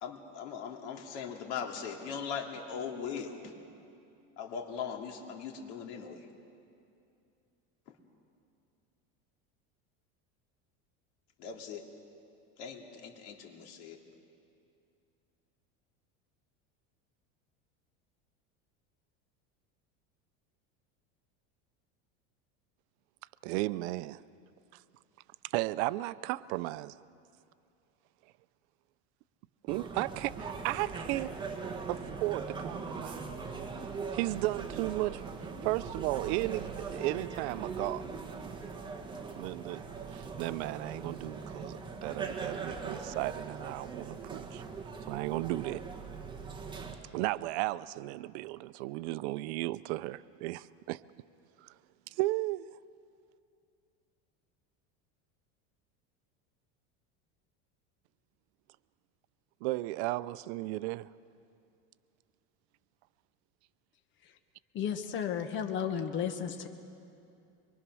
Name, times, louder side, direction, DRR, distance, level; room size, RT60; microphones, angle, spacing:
voice 1, 0.0-3.5 4.4-6.3 7.9-8.0 11.4-11.9 12.6-14.0, left 6 dB, 75° left, 2 dB, 2.8 m, -40 dB
voice 2, 23.4-24.2 25.4-27.0 29.6-31.4 31.9-33.2 34.1-38.1 38.3-38.6 39.3-44.6 45.0-45.9 47.1-51.0 51.6-51.7 52.1-52.8 59.6-61.1, right 18 dB, 70° right, 17 dB, 0.6 m, -35 dB
sound 1, 29.7-47.0, right 5 dB, 15° right, 1.5 m, -41 dB
voice 3, 64.7-66.7, left 8 dB, 35° left, 7 dB, 1.2 m, -33 dB
24.5 x 22.5 x 6.3 m, 2.6 s
cardioid pair, 165°, 35 cm